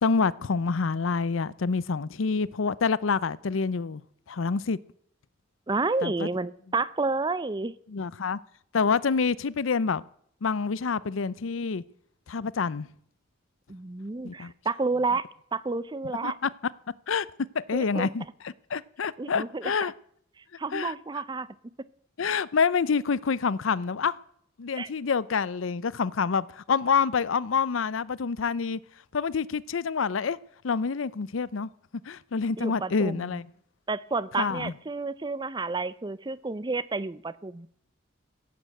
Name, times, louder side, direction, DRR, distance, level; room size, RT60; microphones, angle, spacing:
voice 1, 0.0-4.0 4.3-4.8 6.0-6.3 7.9-8.4 8.7-10.0 10.4-11.8 12.3-12.9 14.2-14.5 16.2-16.5 17.1-17.3 17.5-18.2 18.7-19.9 20.7-20.9 22.2-24.2 24.6-28.8 29.1-30.4 30.6-31.7 32.1-33.5 34.4-34.7, left 5 dB, 85° left, 0.6 m, -27 dB
voice 2, 5.7-7.7 13.7-15.2 15.5-16.4 17.7-18.1 19.2-19.7 20.6-21.5 24.7-24.9 32.6-33.4 33.9-37.7, right 3 dB, 25° right, 0.5 m, -30 dB
16.0 x 8.6 x 7.7 m
head